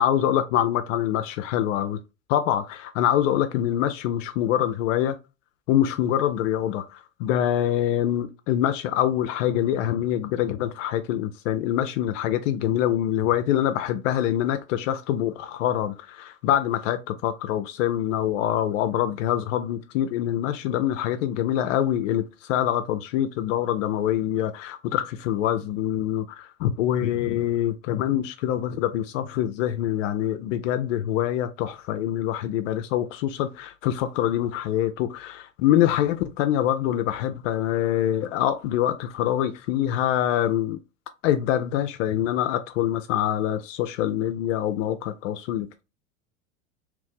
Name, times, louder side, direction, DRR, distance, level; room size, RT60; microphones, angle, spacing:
voice 1, 0.0-2.0 2.3-5.2 5.7-40.8 41.2-45.8, left 11 dB, 65° left, 0.6 m, -25 dB
2.9 x 2.6 x 3.6 m
hypercardioid pair, 95°, 41 cm